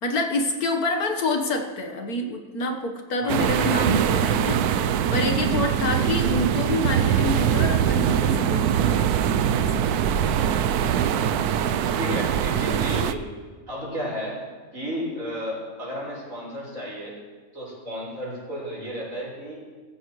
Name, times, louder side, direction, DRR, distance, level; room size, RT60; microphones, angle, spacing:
voice 1, 0.0-9.1 9.6-9.8, left 2 dB, 70° left, 4 dB, 1.9 m, -27 dB
voice 2, 3.2-3.7 5.8-6.1 12.0-13.3 13.7-14.4 14.7-17.2 17.5-19.6, equal, 60° right, -6 dB, 5.9 m, -33 dB
sound 1, 3.3-13.1, right 8 dB, 80° right, 1.2 m, -22 dB
20.0 x 15.0 x 3.2 m, 1.4 s
omnidirectional pair, 1.6 m